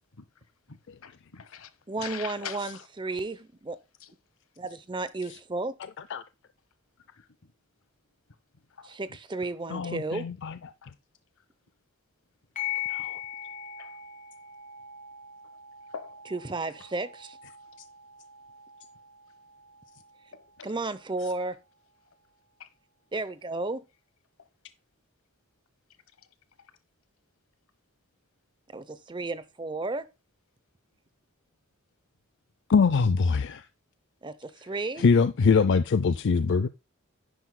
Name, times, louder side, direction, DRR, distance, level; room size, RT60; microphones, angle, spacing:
voice 1, 0.7-1.7 2.0-2.8 4.0-4.1 7.2-7.3 8.8-9.0 10.8-10.9 13.8-13.9 15.9-16.2 20.3-20.8 22.6-22.7, left 7 dB, 75° left, 1.1 m, -42 dB
voice 2, 1.9-3.8 4.6-5.7 8.8-10.3 16.3-17.4 20.6-21.6 23.1-23.8 28.7-30.0 34.2-35.1, right 3 dB, 20° right, 0.6 m, -33 dB
voice 3, 9.7-10.5 12.9-13.2 32.7-33.6 35.0-36.7, left 5 dB, 55° left, 0.4 m, -23 dB
sound 1, 12.5-21.6, left 10 dB, 35° left, 1.8 m, -41 dB
10.5 x 9.6 x 2.2 m
head